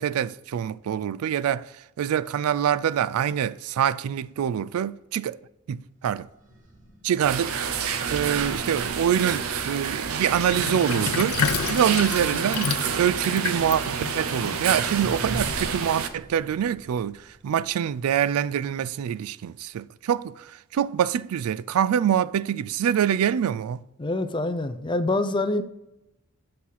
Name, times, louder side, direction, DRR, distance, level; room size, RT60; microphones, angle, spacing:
voice 1, 0.0-5.4 5.7-6.3 7.0-11.4 11.7-23.8, right 9 dB, 90° right, 0.3 m, -25 dB
sound 1, 5.9-18.1, right 1 dB, 35° right, 1.9 m, -42 dB
sound 2, 7.2-16.1, right 6 dB, 75° right, 0.7 m, -29 dB
Sink (filling or washing), 10.5-15.2, left 7 dB, 80° left, 0.4 m, -30 dB
voice 2, 24.0-25.6, left 2 dB, 25° left, 0.5 m, -25 dB
8.6 x 5.6 x 4.0 m
head